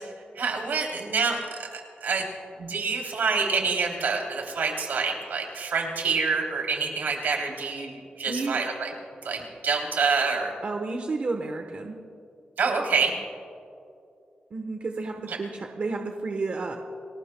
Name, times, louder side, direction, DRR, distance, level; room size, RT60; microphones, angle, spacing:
voice 1, 0.0-2.3 2.6-8.9 9.2-10.5 12.6-13.2 15.3-15.4, right 4 dB, 85° right, 1 dB, 3.0 m, -27 dB
voice 2, 8.3-8.6 10.6-12.0 14.5-16.8, right 3 dB, 45° right, 3 dB, 1.0 m, -31 dB
30.0 x 19.0 x 2.2 m, 2.6 s
wide cardioid pair, 145°, 3 cm